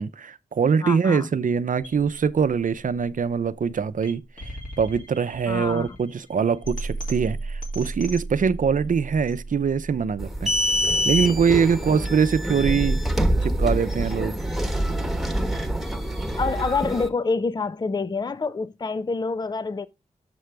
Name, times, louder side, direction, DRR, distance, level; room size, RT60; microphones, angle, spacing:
voice 1, 0.0-10.5 11.0-13.0 13.4-14.3, right 6 dB, 65° right, 0.6 m, -23 dB
voice 2, 0.8-1.3 5.5-5.9 16.4-19.9, left 4 dB, 30° left, 0.5 m, -27 dB
sound 1, 1.8-13.8, right 2 dB, 65° left, 2.8 m, -37 dB
sound 2, 10.2-17.1, equal, ahead, 1.2 m, -25 dB
6.8 x 6.3 x 3.4 m
cardioid pair, 50°, 15 cm